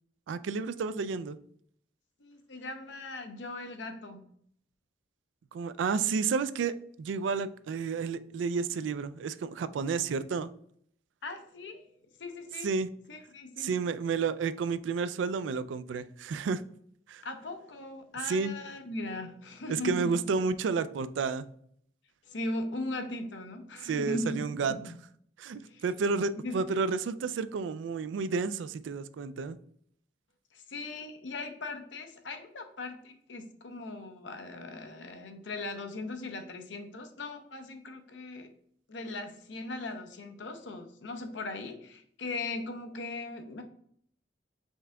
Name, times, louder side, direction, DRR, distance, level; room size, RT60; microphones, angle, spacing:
voice 1, 0.3-1.4 5.5-10.5 12.6-12.9 13.6-16.6 17.1-17.2 18.2-18.5 19.7-21.4 23.8-24.7 25.4-29.6, right 5 dB, 80° right, 14 dB, 0.3 m, -31 dB
voice 2, 2.2-4.3 11.2-11.9 12.2-12.7 13.1-13.7 17.2-20.1 22.3-25.0 25.6-25.8 26.4-26.5 30.5-38.5 38.9-43.6, left 2 dB, 75° left, 6 dB, 0.7 m, -39 dB
5.3 x 3.6 x 2.2 m, 0.64 s
head